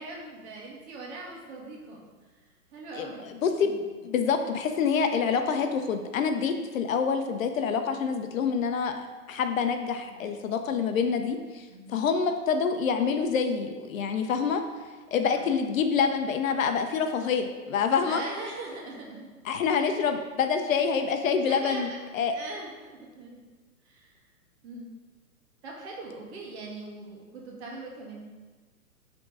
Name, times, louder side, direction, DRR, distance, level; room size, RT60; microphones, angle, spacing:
voice 1, 0.0-2.4 2.7-3.8 10.1-10.3 11.7-12.0 15.3-15.5 18.0-19.3 19.6-19.9 21.5-23.4 23.8-24.2 24.6-24.9 25.6-28.3, right 2 dB, 45° right, -2 dB, 1.8 m, -41 dB
voice 2, 3.4-3.7 4.0-14.6 15.1-18.2 19.5-21.9 22.1-22.3, left 6 dB, 60° left, 7 dB, 0.7 m, -26 dB
6.0 x 3.8 x 4.8 m, 1.4 s
hypercardioid pair, 145°, 47 cm